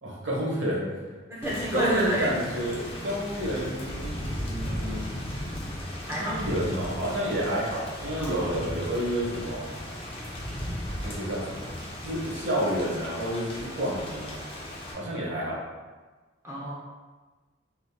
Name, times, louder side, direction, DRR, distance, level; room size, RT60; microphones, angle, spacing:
voice 1, 0.0-1.2 1.7-4.1 4.4-5.1 6.2-9.7 11.0-11.7 12.0-14.4 14.9-15.6, equal, 70° right, -5 dB, 1.0 m, -30 dB
voice 2, 1.3-2.3 6.0-6.4 8.2-8.7 16.4-16.8, right 1 dB, 15° right, -7 dB, 0.7 m, -29 dB
Thunder / Rain, 1.4-14.9, equal, 30° left, 0.5 m, -36 dB
3.4 x 2.9 x 2.3 m, 1.3 s
head